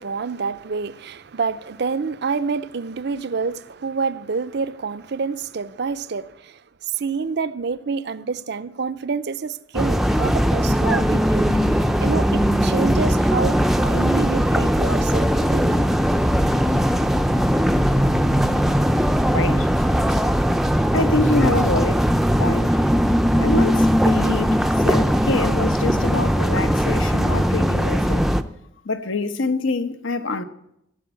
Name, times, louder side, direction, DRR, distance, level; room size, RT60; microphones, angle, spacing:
voice 1, 0.0-6.6 6.9-15.7, right 5 dB, 55° right, 0.5 m, -28 dB
sound 1, 9.7-28.4, equal, ahead, 0.5 m, -19 dB
voice 2, 19.3-20.2 20.9-22.0 22.4-22.8 23.4-24.6 24.8-28.3 28.8-30.4, left 2 dB, 80° left, 1.0 m, -25 dB
16.5 x 7.8 x 8.2 m
head